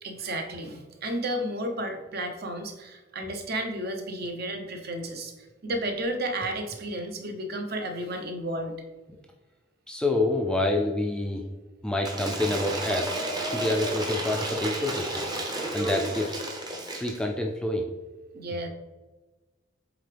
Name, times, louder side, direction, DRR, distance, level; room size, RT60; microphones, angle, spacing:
voice 1, 0.0-8.8 18.3-18.7, right 1 dB, 45° right, 5 dB, 0.8 m, -32 dB
voice 2, 9.9-11.4 11.8-13.2 13.5-15.3 15.7-16.4 17.0-17.9, left 2 dB, 5° left, 1 dB, 0.4 m, -27 dB
Cheering / Applause / Crowd, 12.0-17.2, right 1 dB, 20° right, 0.8 m, -32 dB
8.0 x 3.7 x 3.4 m, 1.2 s
head